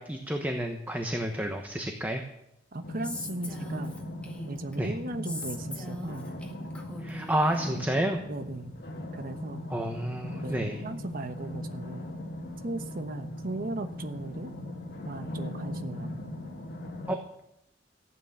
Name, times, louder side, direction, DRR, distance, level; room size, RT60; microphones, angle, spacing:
voice 1, 0.0-2.2 4.8-4.9 7.0-8.2 9.7-10.8 17.1-17.2, right 1 dB, 10° right, 4 dB, 1.1 m, -30 dB
voice 2, 2.7-4.0 4.5-6.3 7.7-7.8 8.3-8.7 9.1-9.6 10.3-12.1 12.6-14.5 15.0-16.4, right 2 dB, 50° right, 8 dB, 1.0 m, -37 dB
sound 1, 2.8-17.1, left 1 dB, 60° left, 1.7 m, -39 dB
Female speech woman speaking, 3.0-4.8 5.3-7.7, left 1 dB, 5° left, 2.0 m, -41 dB
15.0 x 9.1 x 7.2 m, 0.83 s
head